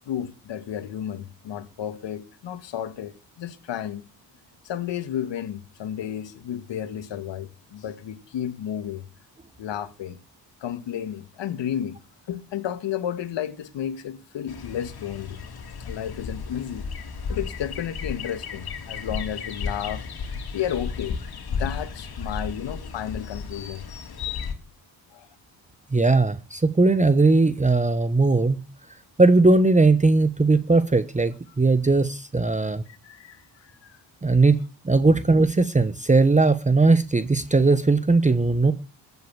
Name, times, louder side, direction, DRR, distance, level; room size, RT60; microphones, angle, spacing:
voice 1, 0.0-4.0 4.6-9.1 9.6-10.2 10.6-12.0 12.3-15.4 15.8-16.9 17.3-20.0 20.5-21.2 21.5-23.8 25.1-25.3 32.9-34.0, left 10 dB, 70° left, 2.0 m, -32 dB
sound 1, 14.5-24.5, left 5 dB, 55° left, 3.3 m, -34 dB
voice 2, 25.9-28.7 29.2-32.8 34.2-34.6 34.8-38.7, right 3 dB, 15° right, 1.2 m, -19 dB
14.5 x 8.2 x 9.8 m
cardioid pair, 80°, 45 cm